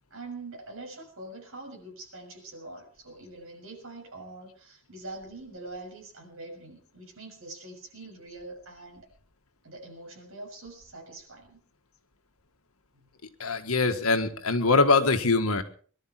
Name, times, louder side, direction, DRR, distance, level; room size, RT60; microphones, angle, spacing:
voice 1, 0.1-9.1 9.6-11.6 12.9-13.1, right 2 dB, 70° right, 1 dB, 6.6 m, -44 dB
voice 2, 13.4-15.6, left 3 dB, 80° left, 8 dB, 1.7 m, -23 dB
22.5 x 12.0 x 4.5 m, 0.43 s
head